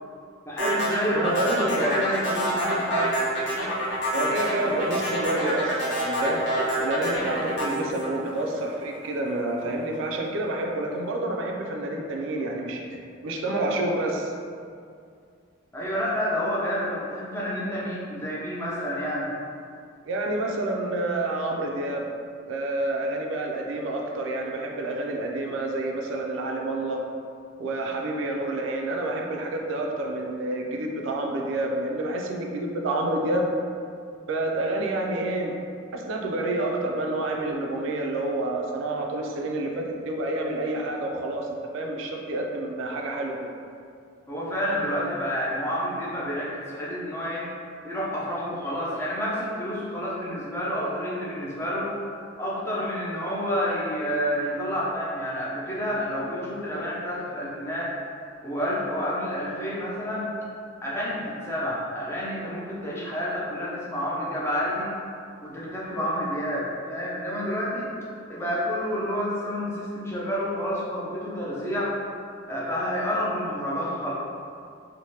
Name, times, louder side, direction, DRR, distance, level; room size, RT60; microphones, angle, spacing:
voice 1, 0.4-1.4 1.7-3.2 15.7-19.3 44.3-47.5 47.8-51.9 52.4-58.0 58.4-60.3 60.8-64.9 65.4-67.9 68.3-72.0 72.5-74.1, equal, 15° left, -6 dB, 0.4 m, -29 dB
sound 1, 0.6-8.9, equal, 55° left, 0.8 m, -27 dB
voice 2, 1.1-2.1 4.1-12.9 13.2-14.3 20.1-22.1 22.4-27.0 27.6-33.5 34.3-35.5 35.9-43.4, right 2 dB, 70° right, 1 dB, 0.3 m, -28 dB
3.2 x 2.1 x 2.7 m, 2.3 s
head